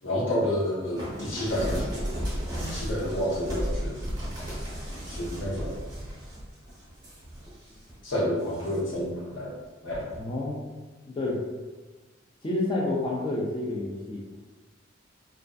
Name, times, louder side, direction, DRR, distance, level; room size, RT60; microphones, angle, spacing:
voice 1, 0.0-4.1 5.0-5.8 8.0-9.6 9.8-10.1, equal, 75° left, -6 dB, 0.8 m, -30 dB
sound 1, 1.0-7.9 8.4-9.0 9.9-10.2, equal, 20° right, 0.8 m, -34 dB
voice 2, 10.2-11.4 12.4-14.2, left 2 dB, 25° left, -3 dB, 0.3 m, -30 dB
2.5 x 2.3 x 2.2 m, 1.2 s
head